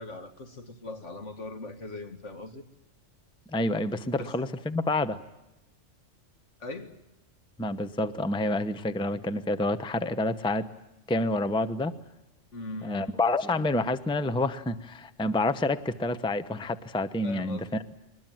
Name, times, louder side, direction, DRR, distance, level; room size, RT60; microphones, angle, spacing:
voice 1, 0.0-2.6 4.2-4.4 6.6-7.0 12.5-13.2 17.2-17.8, left 2 dB, 70° left, 7 dB, 2.2 m, -40 dB
voice 2, 3.5-5.2 7.6-10.7 11.1-11.9 12.8-17.6, left 2 dB, 5° left, 12 dB, 0.7 m, -28 dB
23.0 x 20.5 x 9.1 m, 0.92 s
omnidirectional pair, 1.3 m